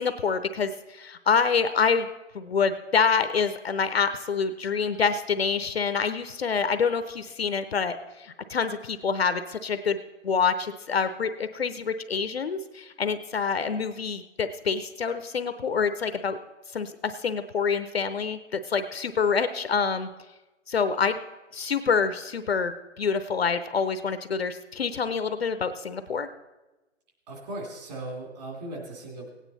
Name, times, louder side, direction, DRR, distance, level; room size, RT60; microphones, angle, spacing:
voice 1, 0.0-2.1 2.3-10.0 10.2-16.4 16.7-20.1 20.7-21.2 21.5-26.3, left 5 dB, 50° left, 11 dB, 0.7 m, -26 dB
voice 2, 27.3-29.3, right 1 dB, 35° right, 0 dB, 2.8 m, -37 dB
17.5 x 9.2 x 4.0 m, 1.1 s
hypercardioid pair, 165°, 39 cm